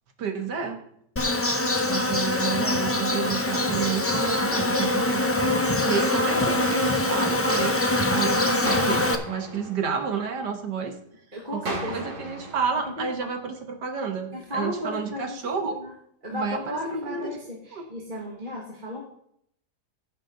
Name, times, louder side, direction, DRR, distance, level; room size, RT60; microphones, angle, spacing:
voice 1, 0.2-0.8 1.9-5.2 5.9-7.8 8.1-10.9 11.7-15.8 16.3-16.8 17.1-17.4 17.7-17.9, right 6 dB, 85° right, 5 dB, 1.9 m, -30 dB
Insect, 1.2-9.2, left 2 dB, 20° left, 0.3 m, -24 dB
sound 1, 8.7-10.7 11.7-13.7, right 1 dB, 70° right, 2.6 m, -37 dB
voice 2, 11.3-12.6 13.0-13.3 14.3-15.9 16.2-19.0, left 1 dB, 30° right, -3 dB, 1.9 m, -35 dB
15.5 x 5.9 x 3.9 m, 0.70 s
omnidirectional pair, 1.8 m